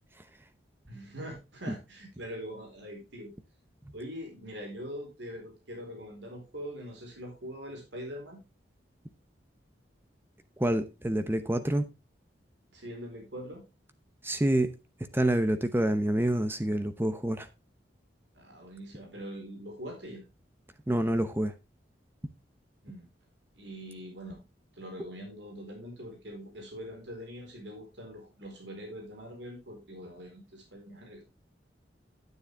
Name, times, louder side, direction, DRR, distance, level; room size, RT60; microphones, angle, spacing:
voice 1, 0.9-3.3 3.9-8.4 12.7-13.6 18.3-20.2 22.8-23.1 23.5-24.4 24.7-31.2, equal, 80° right, 4.3 m, -43 dB
voice 2, 10.6-11.9 14.2-14.7 15.1-17.5 20.9-21.5, right 1 dB, 15° right, 0.8 m, -27 dB
10.0 x 9.3 x 3.5 m
head